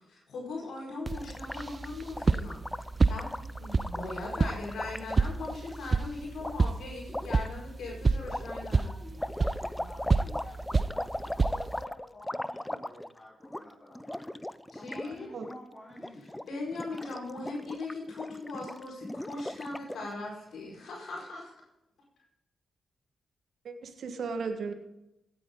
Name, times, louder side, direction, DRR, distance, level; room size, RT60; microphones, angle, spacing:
voice 1, 0.1-2.6 3.1-8.9 14.7-15.3 16.5-21.5, left 3 dB, 75° left, -2 dB, 5.0 m, -39 dB
Gurgling, 1.1-5.8 6.4-6.5 7.1-7.5 8.2-13.2 13.4-13.6 13.9-15.1 15.3-15.6 15.9-16.4 16.7-20.1, left 1 dB, 10° left, 0.6 m, -38 dB
sound 1, 1.1-11.8, right 3 dB, 40° right, 0.5 m, -30 dB
voice 2, 8.7-14.4 14.7-16.7, left 1 dB, 35° left, -6 dB, 4.6 m, -50 dB
voice 3, 23.6-24.7, right 5 dB, 70° right, 7 dB, 1.7 m, -35 dB
16.5 x 9.7 x 3.9 m, 0.86 s
supercardioid pair, 45°, 0 cm